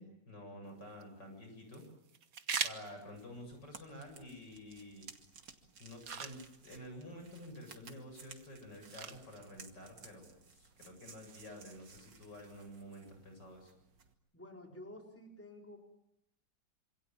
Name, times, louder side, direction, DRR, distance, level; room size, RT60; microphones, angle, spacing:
voice 1, 0.0-1.8 2.6-5.1 5.8-13.7, left 1 dB, 75° left, 4 dB, 8.7 m, -50 dB
sound 1, 0.7-13.7, right 6 dB, 55° right, 1.7 m, -47 dB
sound 2, 3.1-14.1, right 5 dB, 80° right, 2.8 m, -58 dB
voice 2, 14.3-15.8, left 1 dB, 5° left, 1 dB, 4.3 m, -51 dB
27.0 x 27.0 x 7.4 m, 0.79 s
omnidirectional pair, 1.9 m